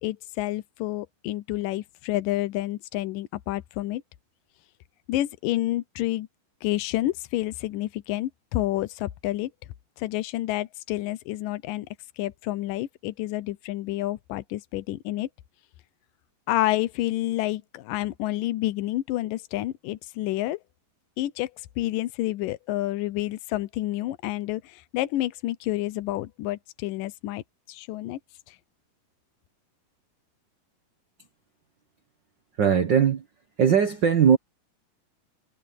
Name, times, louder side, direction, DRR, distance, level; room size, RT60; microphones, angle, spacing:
voice 1, 0.0-4.0 5.1-6.3 6.6-9.5 10.0-11.9 12.2-15.3 16.5-20.6 21.2-21.5 21.8-27.4 27.7-28.2 28.5-28.6, left 16 dB, 80° left, 2.5 m, -29 dB
voice 2, 32.6-33.2 33.6-34.4, right 7 dB, 65° right, 1.1 m, -19 dB
omnidirectional pair, 3.9 m